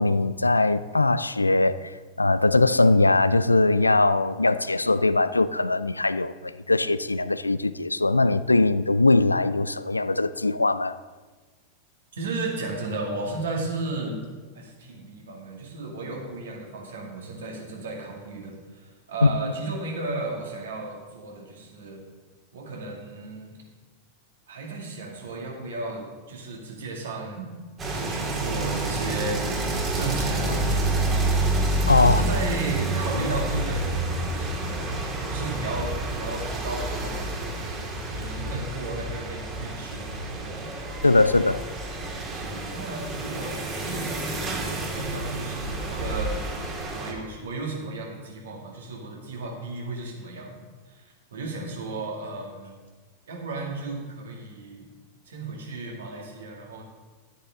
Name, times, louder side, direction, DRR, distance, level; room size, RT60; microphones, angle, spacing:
voice 1, 0.0-1.9 2.2-11.0 19.2-19.3 31.9-32.2 41.0-41.6, left 2 dB, 85° left, 0.3 m, -21 dB
voice 2, 12.1-14.2 14.5-22.0 22.5-23.6 24.5-27.5 27.8-29.4 29.9-31.1 32.0-33.9 34.2-35.0 35.3-37.3 38.1-40.8 42.3-46.4 46.9-50.6 50.9-52.8 53.3-54.9 55.3-56.8, right 3 dB, 65° right, 2.3 m, -34 dB
sound 1, 27.8-47.1, right 2 dB, 25° right, 2.1 m, -28 dB
11.0 x 9.6 x 3.7 m
figure-of-eight pair, 90°, 0 cm